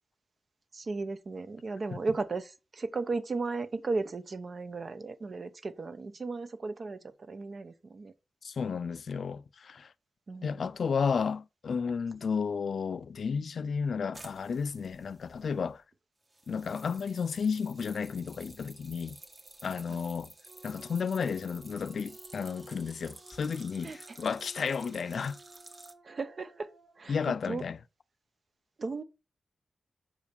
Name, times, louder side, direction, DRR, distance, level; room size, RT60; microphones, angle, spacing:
voice 1, 0.7-8.1 10.3-10.7 19.9-20.0 23.8-24.2 26.0-27.6 28.8-29.0, right 3 dB, 55° right, 0.8 m, -36 dB
voice 2, 8.4-9.9 10.4-15.8 16.5-19.2 19.6-20.3 20.6-25.4 27.1-27.8, left 6 dB, 75° left, 0.4 m, -32 dB
sound 1, 14.1-15.7 16.3-25.9, right 2 dB, 35° right, 1.3 m, -52 dB
sound 2, 20.5-27.1, right 3 dB, 80° right, 2.4 m, -55 dB
5.6 x 4.9 x 5.2 m
wide cardioid pair, 90°, 0 cm